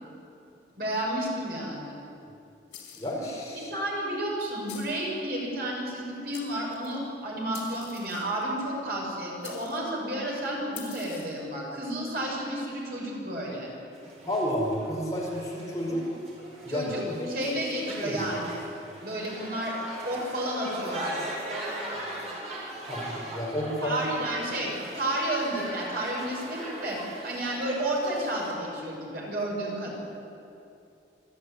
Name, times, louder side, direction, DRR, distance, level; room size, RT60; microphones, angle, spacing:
voice 1, 0.8-2.0 3.7-13.7 16.7-18.7 19.0-19.8 20.0-21.2 23.8-27.0 27.2-30.0, right 1 dB, 55° right, -3 dB, 6.2 m, -31 dB
sound 1, 2.7-3.3 4.7-5.1 5.9-6.0 6.3-7.0 7.5-8.4 9.4-9.9 10.7-11.4, left 9 dB, 85° left, 4.2 m, -46 dB
voice 2, 2.9-3.7 14.2-16.0 16.6-17.5 17.8-18.3 22.9-24.0, equal, 20° left, -4 dB, 4.8 m, -31 dB
sound 2, 13.9-28.5, right 1 dB, 40° right, 5.4 m, -40 dB
26.5 x 12.0 x 9.7 m, 2.7 s
head